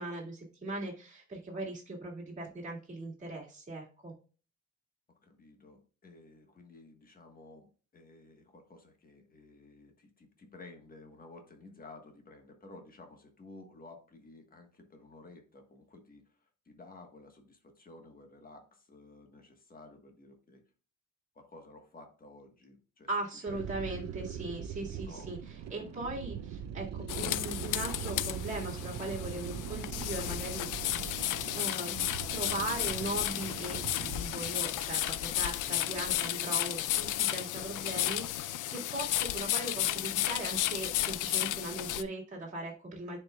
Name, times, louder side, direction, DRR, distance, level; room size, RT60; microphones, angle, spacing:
voice 1, 0.0-4.1 23.1-30.7 31.6-43.2, right 2 dB, 25° right, -4 dB, 2.0 m, -39 dB
voice 2, 5.2-16.2 16.7-20.6 21.3-23.1 23.5-23.9 25.1-26.0, left 2 dB, 30° left, 4 dB, 1.3 m, -54 dB
sound 1, 23.5-34.5, right 8 dB, 60° right, 0.5 m, -41 dB
sound 2, 27.1-42.0, left 13 dB, 85° left, 0.5 m, -33 dB
sound 3, 30.0-36.2, right 2 dB, 10° right, 2.3 m, -54 dB
10.5 x 4.6 x 2.3 m, 0.38 s
wide cardioid pair, 165°, 30 cm